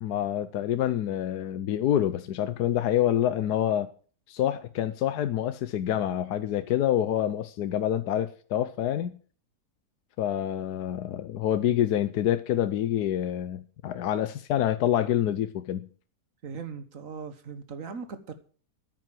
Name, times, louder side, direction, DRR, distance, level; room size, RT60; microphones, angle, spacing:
voice 1, 0.0-3.9 4.3-9.2 10.2-15.9, left 11 dB, 80° left, 1.3 m, -27 dB
voice 2, 16.4-18.3, right 5 dB, 55° right, 1.7 m, -39 dB
9.8 x 9.3 x 7.5 m
omnidirectional pair, 1.7 m